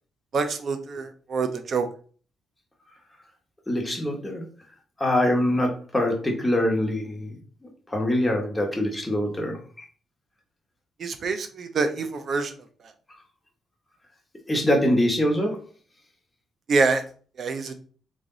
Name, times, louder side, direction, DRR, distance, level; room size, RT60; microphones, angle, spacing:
voice 1, 0.3-1.8 11.0-12.5 16.7-17.0 17.4-17.8, right 4 dB, 55° right, 8 dB, 0.7 m, -26 dB
voice 2, 3.7-4.4 5.0-7.4 7.9-9.6 14.5-15.6, left 1 dB, 10° left, 1 dB, 1.4 m, -24 dB
3.5 x 3.3 x 3.9 m, 0.42 s
cardioid pair, 100°, 0 cm